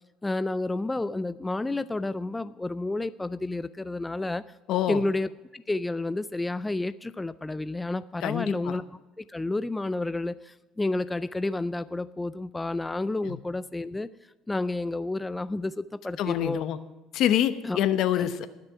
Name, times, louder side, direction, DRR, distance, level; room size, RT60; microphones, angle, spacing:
voice 1, 0.2-4.4 4.9-14.1 14.5-16.6 17.6-17.8 18.2-18.3, left 2 dB, 10° left, 14 dB, 0.3 m, -30 dB
voice 2, 4.7-5.0 8.2-8.8 13.3-13.4 16.2-16.8 17.1-18.5, left 11 dB, 60° left, 12 dB, 0.9 m, -26 dB
19.5 x 6.7 x 4.7 m, 1.1 s
cardioid pair, 120°, 0 cm